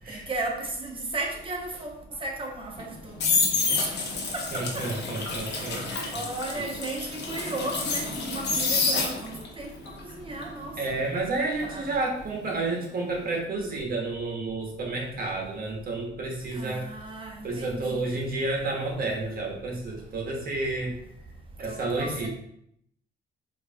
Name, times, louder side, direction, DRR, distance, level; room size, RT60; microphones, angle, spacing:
voice 1, 0.1-3.2 3.5-3.9 4.3-4.8 5.5-5.7 6.1-9.7 10.0-11.0 11.6-11.8 16.5-18.1 21.7-22.3, right 2 dB, 25° right, 0 dB, 0.9 m, -35 dB
sound 1, 2.8-9.5 9.9-12.8 13.0-13.4, left 4 dB, 60° left, 0.8 m, -29 dB
voice 2, 4.5-6.2 6.5-6.7 10.8-16.9 17.4-21.0 21.6-22.3, right 2 dB, 50° right, 0 dB, 1.1 m, -30 dB
4.7 x 2.6 x 2.3 m, 0.72 s
cardioid pair, 90°, 20 cm